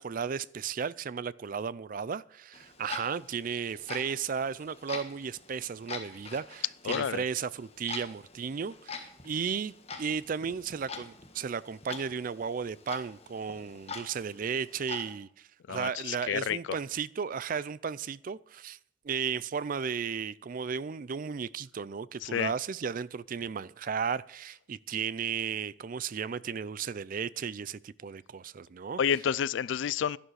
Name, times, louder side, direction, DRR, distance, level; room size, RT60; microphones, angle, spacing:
voice 1, 0.0-18.8 19.0-29.0, right 6 dB, 45° right, 0.4 m, -34 dB
Clock, 2.5-15.1, left 5 dB, 30° left, 1.5 m, -45 dB
voice 2, 6.8-7.2 15.7-16.8 22.2-22.5 29.0-30.2, left 8 dB, 70° left, 0.4 m, -30 dB
11.5 x 11.5 x 4.8 m
head